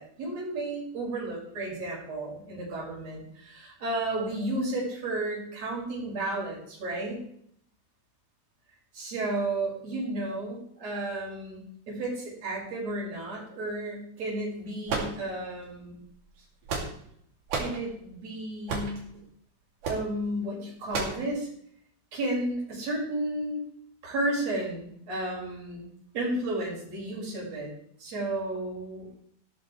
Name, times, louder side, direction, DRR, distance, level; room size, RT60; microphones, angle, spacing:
voice 1, 0.0-7.2 8.9-15.9 17.5-19.2 19.9-21.5 22.1-23.6 24.0-25.9 26.1-27.7 28.0-29.2, right 1 dB, 55° right, -5 dB, 6.5 m, -33 dB
sound 1, 14.9-15.6 16.4-17.1 17.5-17.8 18.7-19.0 19.8-20.1 20.9-21.2, right 4 dB, 85° right, 4.2 m, -31 dB
15.0 x 13.0 x 3.3 m, 0.66 s
omnidirectional pair, 3.6 m